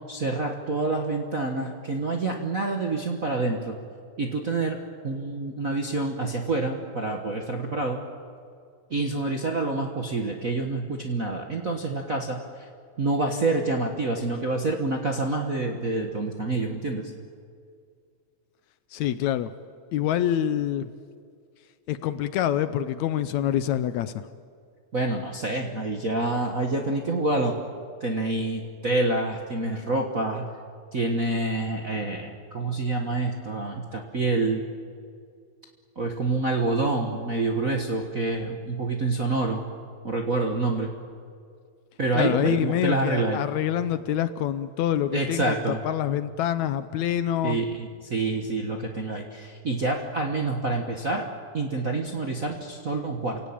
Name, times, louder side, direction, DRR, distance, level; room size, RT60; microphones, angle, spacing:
voice 1, 0.1-3.8 4.2-4.8 5.0-8.0 8.9-12.4 13.0-17.1 24.9-27.5 28.0-30.5 30.9-34.6 35.9-39.6 40.0-40.9 42.0-43.4 45.1-45.8 47.4-51.3 51.5-53.4, right 2 dB, 45° right, 1 dB, 1.1 m, -27 dB
voice 2, 18.9-19.5 19.9-20.9 21.9-24.3 42.1-47.6, left 11 dB, 75° left, 13 dB, 1.9 m, -26 dB
28.5 x 17.5 x 8.8 m, 2.2 s
omnidirectional pair, 3.6 m